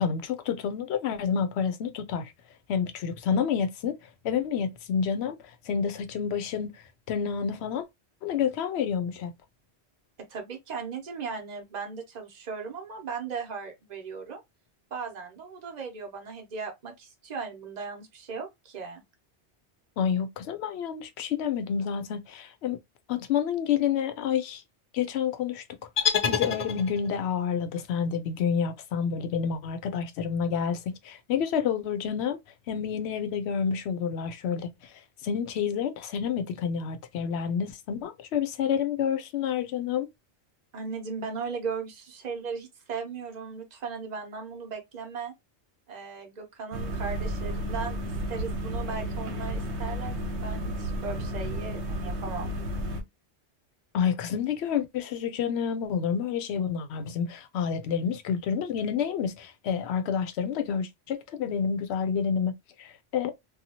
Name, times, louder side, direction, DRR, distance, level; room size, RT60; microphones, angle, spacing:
voice 1, 0.0-2.3 2.7-3.9 4.2-5.4 5.7-6.7 7.1-7.8 8.2-9.3 20.0-22.8 23.1-24.6 24.9-25.6 26.0-32.4 32.7-34.7 35.2-40.1 53.9-62.5 62.8-63.3, left 7 dB, 75° left, 0.8 m, -29 dB
voice 2, 10.3-14.4 14.9-19.0 40.7-45.3 45.9-48.0 48.3-52.5, right 5 dB, 45° right, 0.8 m, -37 dB
sound 1, 26.0-27.3, left 7 dB, 50° left, 0.5 m, -27 dB
sound 2, 46.7-53.0, equal, 80° right, 1.0 m, -32 dB
2.7 x 2.3 x 2.7 m
omnidirectional pair, 1.1 m